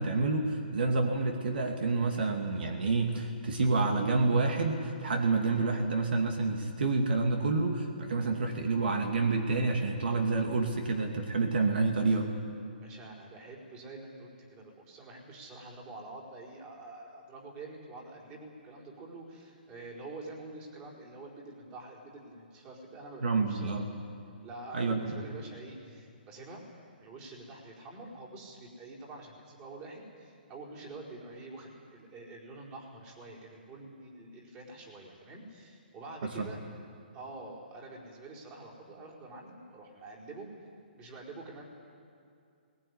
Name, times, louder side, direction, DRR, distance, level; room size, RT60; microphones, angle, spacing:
voice 1, 0.0-12.3 23.2-23.9 24.7-25.2 36.2-36.5, right 3 dB, 65° right, 3 dB, 2.6 m, -28 dB
voice 2, 12.8-23.9 24.4-26.6 27.0-36.6 37.1-40.5 41.0-41.7, right 2 dB, 20° right, -2 dB, 4.5 m, -47 dB
20.0 x 19.5 x 9.8 m, 2.4 s
hypercardioid pair, 155°, 6 cm